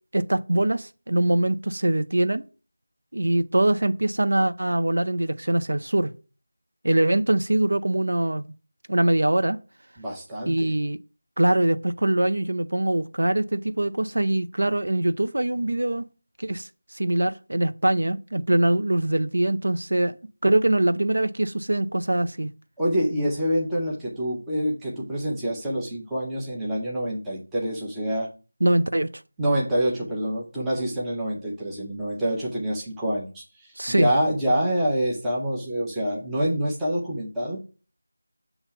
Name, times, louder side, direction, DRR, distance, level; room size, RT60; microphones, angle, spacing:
voice 1, 0.1-2.4 3.1-6.1 6.8-8.4 8.9-9.6 10.4-11.0 11.4-16.1 16.4-20.2 20.4-22.5 28.6-29.1 33.8-34.1, right 1 dB, 70° right, 0.5 m, -23 dB
voice 2, 10.0-10.7 22.8-28.3 29.4-37.6, equal, 5° right, 0.6 m, -26 dB
6.8 x 2.8 x 5.5 m
figure-of-eight pair, 180°, 0 cm